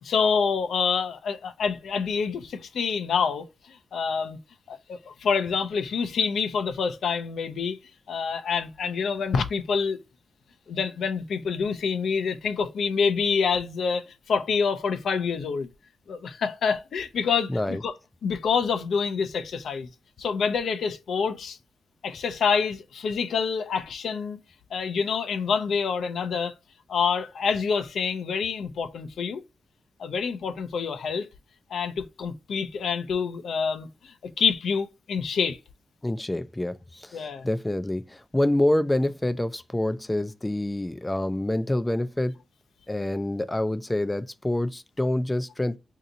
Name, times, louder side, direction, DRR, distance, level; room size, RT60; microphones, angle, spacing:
voice 1, 0.0-4.4 4.7-7.8 8.1-10.0 10.7-15.7 16.1-17.9 18.2-19.9 20.2-21.6 22.0-24.4 24.7-26.5 26.9-29.4 30.0-31.3 31.7-35.6 37.1-37.5, left 5 dB, 80° left, 0.5 m, -27 dB
voice 2, 17.5-17.8 36.0-42.3 42.9-45.8, left 1 dB, 15° left, 0.3 m, -27 dB
2.8 x 2.5 x 3.8 m
cardioid pair, 70°, 0 cm